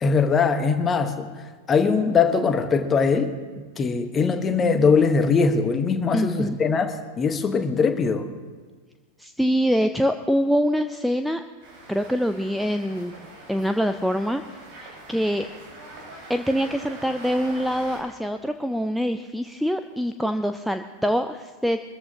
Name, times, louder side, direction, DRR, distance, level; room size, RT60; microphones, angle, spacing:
voice 1, 0.0-8.3, left 5 dB, 20° left, 8 dB, 1.1 m, -21 dB
voice 2, 6.1-6.6 9.2-11.4 11.9-13.1 13.5-14.4 14.8-15.5 16.3-21.8, equal, ahead, 8 dB, 0.4 m, -24 dB
sound 1, 11.6-18.0, right 2 dB, 45° right, 4.8 m, -43 dB
23.0 x 14.0 x 2.8 m, 1.4 s
figure-of-eight pair, 90°, 0 cm